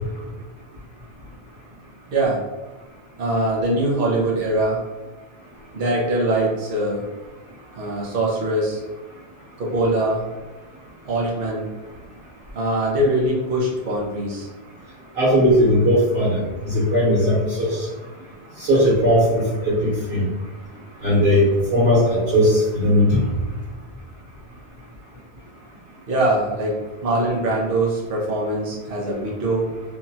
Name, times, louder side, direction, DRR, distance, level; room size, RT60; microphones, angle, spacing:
voice 1, 2.1-2.4 3.2-4.8 5.7-7.0 7.7-8.8 9.6-10.2 11.0-11.7 12.5-14.5 26.1-26.8 27.0-29.7, right 1 dB, 65° right, -3 dB, 0.9 m, -22 dB
voice 2, 15.2-16.4 16.7-17.7 18.6-19.7 20.1-20.3 21.0-23.2, equal, 90° right, -9 dB, 1.3 m, -17 dB
2.8 x 2.2 x 2.8 m, 1.2 s
omnidirectional pair, 1.0 m